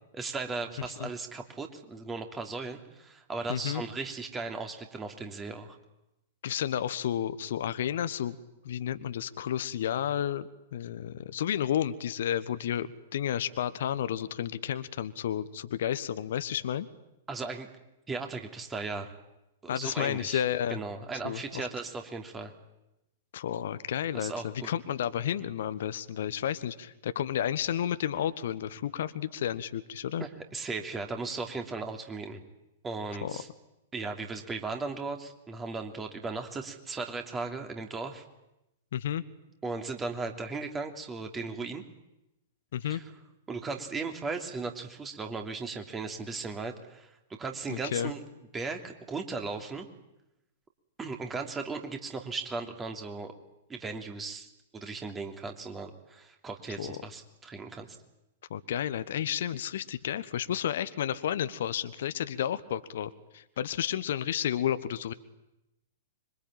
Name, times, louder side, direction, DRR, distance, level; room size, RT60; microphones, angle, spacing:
voice 1, 0.1-5.8 17.3-17.7 18.1-19.1 19.6-20.4 20.7-22.5 24.1-24.7 30.2-32.4 32.8-33.5 33.9-38.2 39.6-41.8 42.9-43.0 43.5-47.1 47.4-48.2 48.5-49.9 51.0-53.3 53.7-54.5 54.7-57.9, right 4 dB, 15° right, 5 dB, 3.0 m, -37 dB
voice 2, 3.5-3.8 6.4-8.4 8.6-16.9 19.7-20.8 21.2-21.7 23.3-30.3 33.2-33.3 38.9-39.2 42.7-43.0 47.7-48.1 56.8-57.0 58.5-65.1, left 10 dB, 55° left, 13 dB, 1.1 m, -31 dB
25.5 x 24.0 x 9.0 m, 0.93 s
figure-of-eight pair, 105°, 0 cm